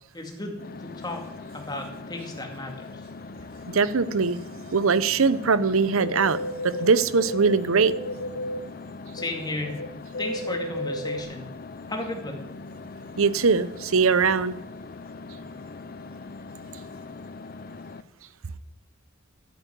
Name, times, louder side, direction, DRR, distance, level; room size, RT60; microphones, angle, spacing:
voice 1, 0.1-1.3 1.5-2.9 9.1-9.8 10.2-11.5 11.9-12.4, left 2 dB, 20° left, 2 dB, 2.3 m, -34 dB
sound 1, 0.6-18.0, left 3 dB, 45° left, 0.5 m, -41 dB
voice 2, 3.7-4.4 4.7-7.9 13.2-14.6, right 5 dB, 80° right, 16 dB, 0.8 m, -21 dB
sound 2, 6.0-8.6 9.0-9.9 10.1-11.2, left 1 dB, 85° left, 1.2 m, -32 dB
11.5 x 9.2 x 9.3 m, 0.92 s
head